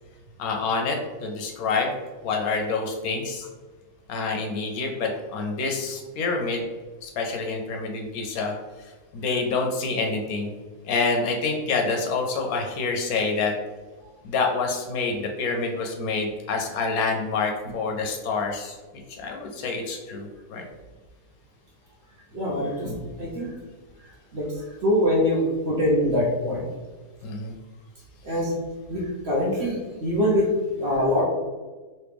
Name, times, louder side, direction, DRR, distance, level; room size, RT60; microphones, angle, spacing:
voice 1, 0.4-1.9 2.2-3.5 4.1-6.6 7.0-10.5 10.8-13.5 14.2-18.8 19.1-20.6 27.2-27.5, left 4 dB, 75° left, 2 dB, 1.0 m, -27 dB
voice 2, 22.3-23.6 24.0-26.7 28.2-28.6 28.9-31.2, left 1 dB, 55° right, -4 dB, 0.8 m, -24 dB
3.1 x 2.8 x 3.3 m, 1.3 s
omnidirectional pair, 1.7 m